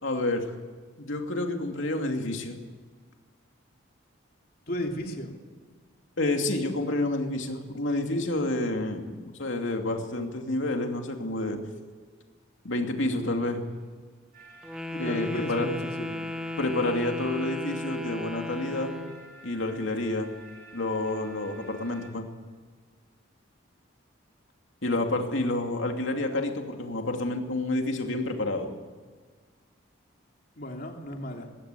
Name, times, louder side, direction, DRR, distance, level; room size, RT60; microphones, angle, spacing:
voice 1, 0.0-0.5 1.0-2.6 6.2-11.6 12.6-13.6 15.0-15.7 16.6-19.0 19.4-20.3 20.7-22.3 24.8-28.7, left 2 dB, 70° left, 3 dB, 2.6 m, -29 dB
voice 2, 4.7-5.3 14.9-16.1 30.6-31.5, equal, 45° left, 2 dB, 2.9 m, -34 dB
sound 1, 14.3-22.1, right 1 dB, 45° right, 4.5 m, -51 dB
Wind instrument woodwind instrument, 14.6-19.2, left 2 dB, 5° right, 1.4 m, -35 dB
21.0 x 17.0 x 8.3 m, 1.5 s
head